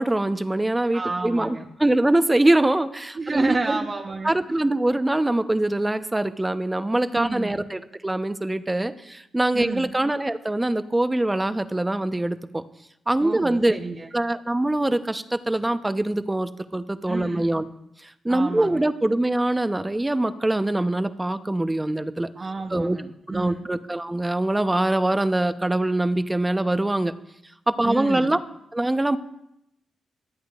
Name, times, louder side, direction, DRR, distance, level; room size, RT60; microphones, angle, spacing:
voice 1, 0.0-3.8 4.2-12.6 13.1-13.8 14.1-17.6 18.0-22.3 22.7-23.0 23.3-27.1 27.7-28.4 28.7-29.2, right 1 dB, 15° right, 10 dB, 0.9 m, -23 dB
voice 2, 0.9-1.7 3.2-4.4 7.1-7.6 9.5-9.9 13.2-14.1 17.1-17.5 18.3-18.8 22.4-23.7 27.8-28.3, right 3 dB, 40° right, 3 dB, 1.1 m, -30 dB
25.5 x 8.6 x 2.5 m, 0.82 s
supercardioid pair, 50°, 0 cm